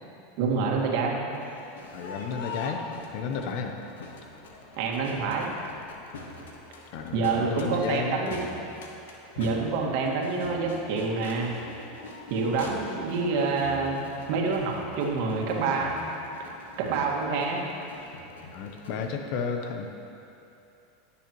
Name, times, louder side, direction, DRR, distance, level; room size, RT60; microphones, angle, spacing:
voice 1, 0.4-1.3 4.8-5.6 7.1-8.5 9.4-11.6 12.3-16.0 16.4-17.6, right 4 dB, 60° right, -1 dB, 1.9 m, -27 dB
Crowd, 1.3-19.1, left 3 dB, 80° left, 1.2 m, -44 dB
voice 2, 1.9-2.8 3.1-3.8 6.9-8.4 18.5-19.9, left 5 dB, 60° left, 5 dB, 0.8 m, -32 dB
19.0 x 7.0 x 3.1 m, 2.8 s
hypercardioid pair, 95°, 0 cm